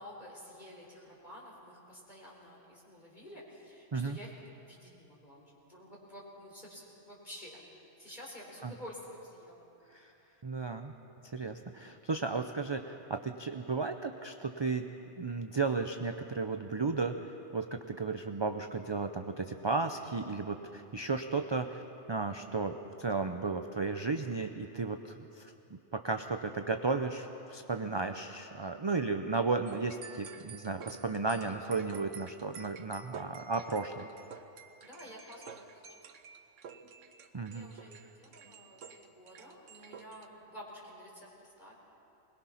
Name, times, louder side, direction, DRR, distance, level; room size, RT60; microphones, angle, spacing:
voice 1, 0.0-4.3 4.6-7.6 8.0-9.6 31.4-31.6 34.8-35.6 37.5-41.7, equal, 35° left, -4 dB, 4.3 m, -50 dB
voice 2, 10.4-10.9 11.3-14.9 15.2-17.1 17.5-21.8 22.1-25.0 25.4-34.1 37.3-37.7, right 4 dB, 35° right, 6 dB, 0.4 m, -34 dB
sound 1, 29.7-40.3, right 6 dB, 85° right, 1.3 m, -50 dB
21.5 x 21.0 x 5.8 m, 2.9 s
omnidirectional pair, 1.3 m